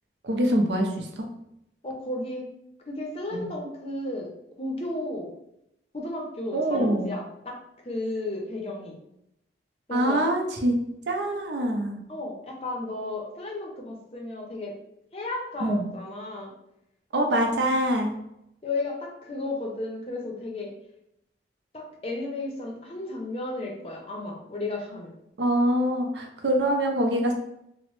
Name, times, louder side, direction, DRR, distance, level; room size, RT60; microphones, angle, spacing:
voice 1, 0.2-1.3 3.3-3.5 6.5-7.2 9.9-10.7 11.1-12.0 15.6-15.9 17.1-18.1 25.4-27.3, right 1 dB, 80° right, 2 dB, 0.5 m, -24 dB
voice 2, 1.8-2.5 2.9-4.3 4.6-5.3 5.9-7.6 7.8-9.0 9.9-10.2 12.1-14.7 15.1-16.5 18.6-20.7 21.7-25.1, left 2 dB, 35° left, 0 dB, 0.5 m, -33 dB
2.9 x 2.0 x 3.0 m, 0.80 s
head